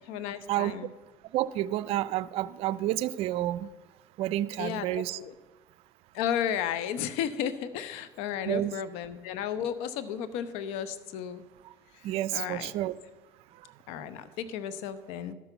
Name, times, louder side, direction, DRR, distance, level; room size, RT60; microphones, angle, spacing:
voice 1, 0.1-0.9 4.6-5.3 6.1-11.4 11.9-12.7 13.9-15.3, left 9 dB, 80° left, 14 dB, 0.8 m, -34 dB
voice 2, 1.3-3.7 4.2-5.2 8.5-8.7 11.6-11.7 12.0-12.9, right 14 dB, 70° right, 18 dB, 0.5 m, -30 dB
12.5 x 6.1 x 6.9 m, 1.2 s
supercardioid pair, 90°, 10 cm